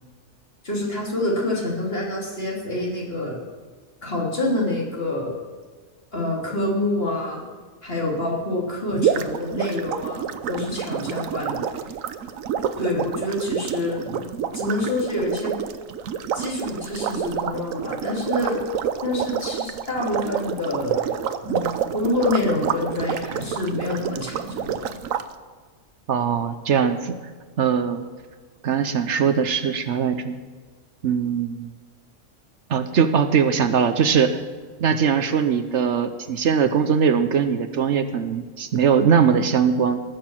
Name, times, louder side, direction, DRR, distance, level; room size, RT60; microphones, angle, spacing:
voice 1, 0.6-3.4 4.0-5.3 6.1-7.4 7.8-11.6 12.8-15.5 16.4-18.6 19.0-21.1 21.5-25.0, left 2 dB, 50° left, -3 dB, 3.6 m, -27 dB
sound 1, 8.9-25.2, right 8 dB, 85° right, 1.1 m, -28 dB
voice 2, 26.1-27.1 27.6-28.1 28.6-30.4 31.0-31.7 32.7-34.4 34.8-40.0, right 7 dB, 65° right, 10 dB, 1.0 m, -21 dB
19.5 x 6.8 x 7.4 m, 1.5 s
omnidirectional pair, 1.3 m